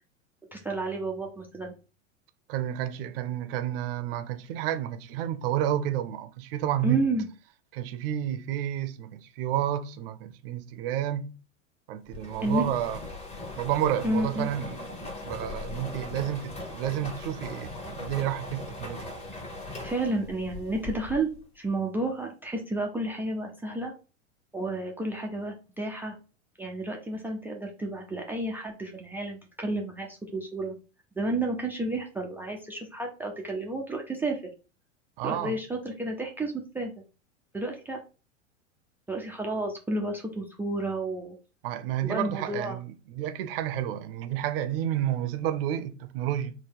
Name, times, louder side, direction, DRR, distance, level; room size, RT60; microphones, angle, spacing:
voice 1, 0.5-1.7 6.8-7.3 12.4-12.6 14.0-14.5 19.8-21.3 21.6-23.9 24.5-26.2 26.6-30.7 31.2-34.4 35.2-36.9 37.5-38.0 39.1-41.4 42.0-42.8, right 2 dB, 5° right, 0.4 m, -31 dB
voice 2, 2.5-7.0 7.7-11.3 11.9-13.0 13.6-19.1 35.2-35.6 41.6-46.5, right 11 dB, 50° right, 0.6 m, -30 dB
sound 1, 12.1-21.4, left 2 dB, 15° left, 1.0 m, -39 dB
3.8 x 2.2 x 4.4 m
figure-of-eight pair, 90°, 38 cm